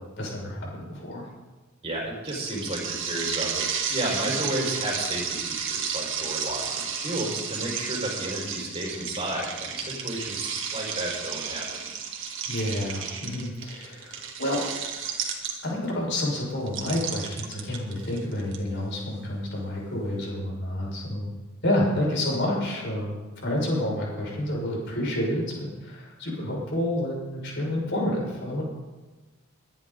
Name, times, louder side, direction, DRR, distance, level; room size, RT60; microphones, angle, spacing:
voice 1, 0.2-1.2 12.5-14.6 15.6-21.3 21.6-23.1 23.4-28.6, left 1 dB, 60° left, -3 dB, 6.3 m, -29 dB
voice 2, 1.8-11.9, right 1 dB, 30° right, -3 dB, 5.4 m, -32 dB
sound 1, 2.3-15.9 16.7-18.6, right 7 dB, 65° right, 2.2 m, -32 dB
22.5 x 11.0 x 4.0 m, 1.2 s
head